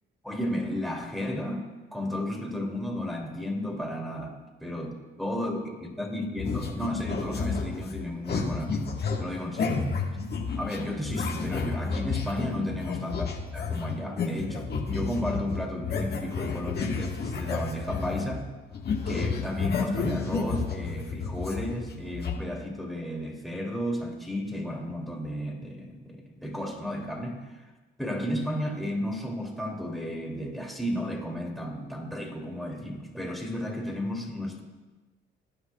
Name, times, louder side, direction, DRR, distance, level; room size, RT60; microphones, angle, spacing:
voice 1, 0.2-4.3 4.6-4.9 5.2-5.7 6.0-9.9 10.6-18.5 19.1-27.6 28.0-34.6, left 1 dB, ahead, -1 dB, 2.6 m, -33 dB
sound 1, 6.4-18.4 18.7-22.3, left 4 dB, 55° left, 1.6 m, -31 dB
19.0 x 9.8 x 2.3 m, 1.2 s
cardioid pair, 90°, 20 cm